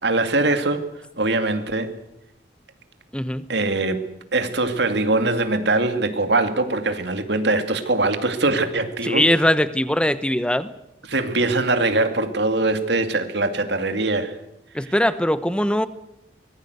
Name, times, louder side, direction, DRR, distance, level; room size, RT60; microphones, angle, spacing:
voice 1, 0.0-0.9 1.2-1.9 3.5-9.4 11.1-14.4 14.8-14.9, right 2 dB, 65° right, 8 dB, 2.4 m, -22 dB
voice 2, 3.1-3.4 9.1-10.7 14.7-15.9, left 1 dB, 5° left, 13 dB, 1.0 m, -21 dB
24.5 x 20.5 x 8.1 m, 0.81 s
head